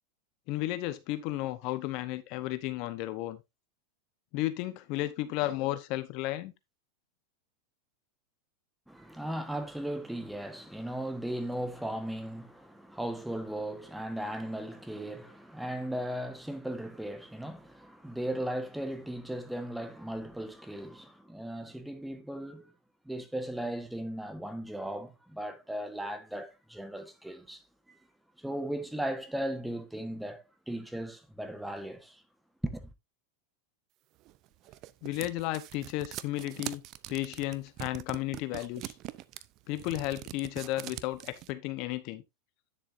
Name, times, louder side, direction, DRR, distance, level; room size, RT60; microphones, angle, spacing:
voice 1, 0.5-3.4 4.3-6.5 35.0-36.8 37.1-38.9 39.7-42.2, left 16 dB, 50° left, 0.9 m, -33 dB
voice 2, 8.9-22.7 23.0-28.0 28.4-32.2 32.6-32.9, right 1 dB, 5° right, 1.3 m, -37 dB
sound 1, 34.3-41.5, right 16 dB, 45° right, 0.6 m, -42 dB
10.0 x 6.7 x 2.6 m
hypercardioid pair, 120°, 0 cm